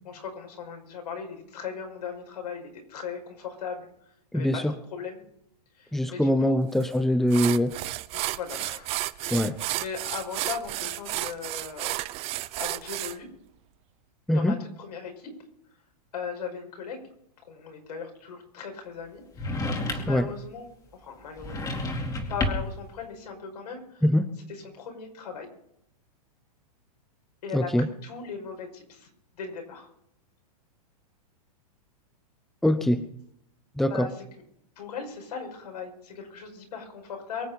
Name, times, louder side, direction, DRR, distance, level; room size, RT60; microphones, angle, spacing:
voice 1, 0.0-3.9 4.3-5.2 5.7-6.6 8.1-8.9 9.2-12.0 12.6-13.3 14.3-15.3 16.1-17.0 17.4-21.7 22.3-24.1 24.5-25.5 27.4-29.1 29.3-29.9 33.9-34.2 34.8-37.5, left 6 dB, 80° left, 3 dB, 5.5 m, -38 dB
voice 2, 4.3-4.7 5.9-7.7 9.3-9.6 14.3-14.6 20.1-20.3 24.0-24.3 27.5-27.9 32.6-33.0 33.8-34.1, equal, ahead, 11 dB, 0.8 m, -23 dB
sound 1, 6.8-6.9 7.3-13.2, right 18 dB, 30° right, 0.6 m, -32 dB
sound 2, 19.4-20.3 21.4-22.8, left 2 dB, 15° left, 2.5 m, -30 dB
23.5 x 8.1 x 5.6 m, 0.74 s
hypercardioid pair, 135°, 20 cm